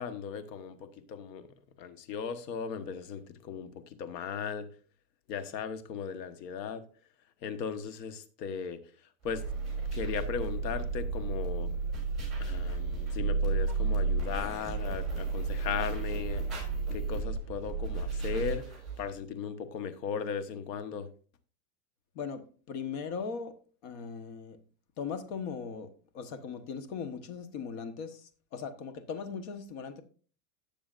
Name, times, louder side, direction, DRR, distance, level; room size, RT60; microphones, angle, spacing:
voice 1, 0.0-1.5 1.8-4.7 5.3-6.8 7.4-8.8 9.2-9.4 9.9-11.7 12.4-16.4 16.9-18.6 19.0-21.1, left 6 dB, 80° left, 1.4 m, -37 dB
sound 1, 9.2-19.1, right 4 dB, ahead, 5.7 m, -32 dB
voice 2, 22.7-23.5 23.8-24.6 25.0-25.9 26.1-30.0, left 6 dB, 45° left, 1.3 m, -38 dB
17.5 x 7.0 x 2.5 m
supercardioid pair, 160°, 48 cm